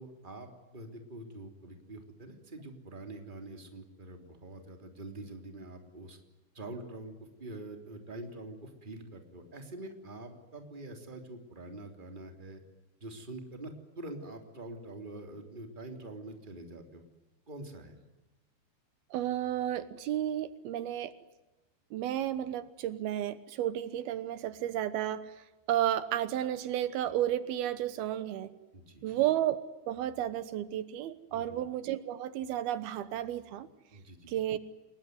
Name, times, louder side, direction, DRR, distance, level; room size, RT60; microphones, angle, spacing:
voice 1, 0.0-6.2 6.5-7.1 7.4-12.6 13.0-13.7 14.0-17.0 17.5-18.0 28.7-29.1 31.3-31.6 33.9-34.3, right 2 dB, 15° right, 5 dB, 3.1 m, -45 dB
voice 2, 19.1-21.1 21.9-25.3 25.7-28.5 29.0-33.7 34.3-34.6, right 12 dB, 80° right, 14 dB, 3.0 m, -32 dB
29.0 x 21.5 x 9.5 m, 1.1 s
omnidirectional pair, 4.4 m